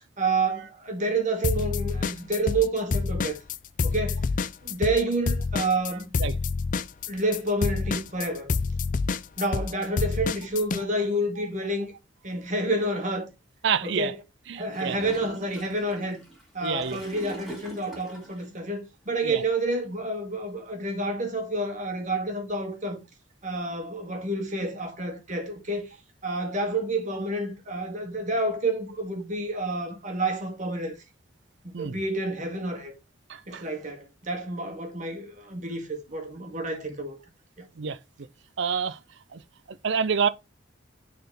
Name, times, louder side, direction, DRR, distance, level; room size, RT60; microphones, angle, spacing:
voice 1, 0.2-3.4 3.8-4.2 4.6-6.2 7.1-8.5 9.4-11.9 12.2-13.3 13.8-14.1 14.6-16.2 16.5-23.0 23.4-25.9 26.2-30.9 31.6-32.9 33.5-37.2 37.6-37.7, right 2 dB, 40° right, 1.9 m, -29 dB
sound 1, 1.4-2.7 2.9-10.8, left 4 dB, 40° left, 0.4 m, -27 dB
voice 2, 13.6-14.1 14.5-15.0 16.6-17.0 19.2-19.4 31.7-32.0 33.3-33.6 37.8-38.0 38.6-39.0 39.3-39.4 39.7-40.3, right 6 dB, 60° right, 0.5 m, -27 dB
Gurgling / Toilet flush, 14.7-18.5, right 1 dB, ahead, 3.3 m, -44 dB
6.6 x 4.3 x 4.0 m
head